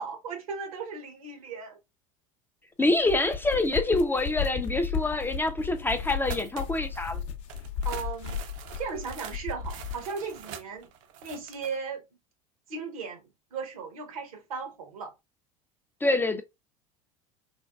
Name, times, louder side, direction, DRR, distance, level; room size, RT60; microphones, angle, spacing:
voice 1, 0.0-1.8 7.8-8.4 8.8-10.9 11.2-12.0 12.7-15.1, right 5 dB, 80° right, 0.9 m, -36 dB
voice 2, 2.8-7.2 16.0-16.4, left 2 dB, 10° left, 0.3 m, -26 dB
sound 1, 2.9-10.1, left 7 dB, 60° left, 0.6 m, -34 dB
sound 2, 6.2-7.1 7.5-11.8, right 8 dB, 65° right, 0.5 m, -44 dB
3.3 x 2.2 x 2.2 m
hypercardioid pair, 75°, 18 cm